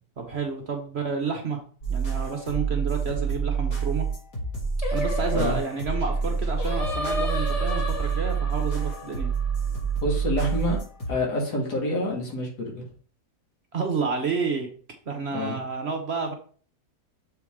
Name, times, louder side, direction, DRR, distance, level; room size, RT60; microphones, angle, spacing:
voice 1, 0.2-1.6 1.9-4.1 4.9-9.3 13.7-14.7 15.1-16.3, right 5 dB, 50° right, 4 dB, 1.0 m, -30 dB
sound 1, 1.8-11.1, right 5 dB, 60° left, 3.4 m, -27 dB
Singing, 4.8-10.1, left 1 dB, 25° left, 1.0 m, -34 dB
voice 2, 10.0-10.8 11.1-12.8 15.3-15.6, left 1 dB, 75° left, -1 dB, 2.4 m, -27 dB
6.9 x 4.6 x 3.6 m, 0.43 s
omnidirectional pair, 1.7 m